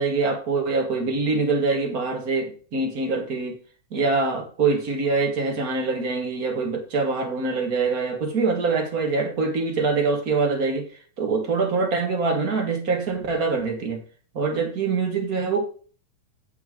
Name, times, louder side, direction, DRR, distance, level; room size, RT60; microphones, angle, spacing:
voice 1, 0.0-3.6 3.9-10.9 11.2-14.0 14.3-15.7, right 4 dB, 35° right, 1.7 m, -24 dB
15.5 x 5.9 x 3.8 m
omnidirectional pair, 3.4 m